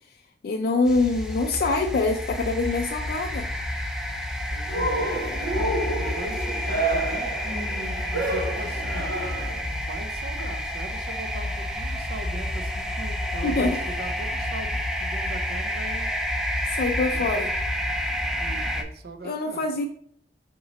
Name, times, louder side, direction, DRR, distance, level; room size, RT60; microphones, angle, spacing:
voice 1, 0.4-3.5 13.4-13.8 16.7-17.5 19.2-19.8, left 3 dB, 60° left, 4 dB, 0.3 m, -24 dB
sound 1, 0.8-18.8, equal, 5° right, 0.4 m, -29 dB
voice 2, 4.5-5.1 5.7-7.3 8.1-9.2 9.8-16.1 17.0-17.5 18.4-19.8, right 2 dB, 60° right, 8 dB, 0.5 m, -40 dB
Cheering, 4.7-9.6, right 2 dB, 80° right, 1.0 m, -29 dB
3.9 x 2.9 x 4.1 m, 0.66 s
head